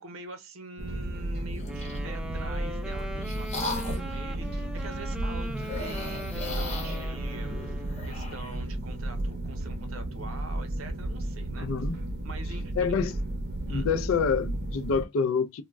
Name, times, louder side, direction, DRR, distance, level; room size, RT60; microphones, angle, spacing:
voice 1, 0.0-7.8 8.0-11.9 12.2-13.0 13.7-13.9, right 3 dB, 90° right, 0.6 m, -45 dB
sound 1, 0.8-15.0, right 1 dB, 50° right, 0.6 m, -33 dB
sound 2, 1.5-2.1 2.7-4.2 5.6-8.6, left 2 dB, 35° left, 0.8 m, -38 dB
Wind instrument woodwind instrument, 1.6-8.1, equal, 5° right, 0.3 m, -40 dB
voice 2, 11.6-12.0 12.8-13.1 13.7-15.6, left 5 dB, 75° left, 0.4 m, -27 dB
2.2 x 2.0 x 3.3 m
head